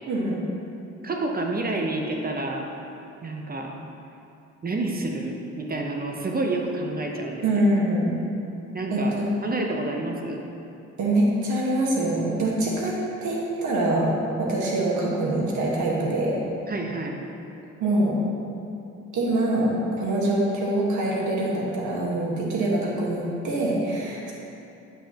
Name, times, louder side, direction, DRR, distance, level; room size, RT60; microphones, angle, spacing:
voice 1, 0.1-0.4 7.4-8.1 8.9-9.3 11.0-16.4 17.8-18.2 19.1-24.3, right 1 dB, 75° right, -3 dB, 1.7 m, -24 dB
voice 2, 1.0-2.7 3.2-3.7 4.6-7.4 8.7-9.1 9.4-10.4 16.7-17.2, right 2 dB, 30° right, 1 dB, 0.9 m, -29 dB
10.5 x 5.7 x 3.0 m, 2.7 s
cardioid pair, 90°, 30 cm